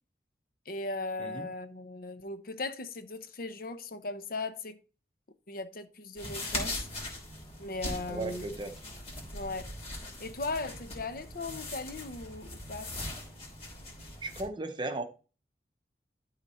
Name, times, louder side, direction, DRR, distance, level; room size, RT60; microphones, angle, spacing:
voice 1, 0.7-4.8 5.5-6.9 7.6-8.5 9.3-9.7 10.2-12.9, left 3 dB, 55° left, 0.8 m, -38 dB
voice 2, 1.2-1.5 8.1-8.7 14.2-15.0, right 2 dB, 25° right, 0.8 m, -36 dB
sound 1, 6.2-14.4, left 1 dB, 35° left, 3.1 m, -40 dB
12.0 x 4.1 x 4.3 m
head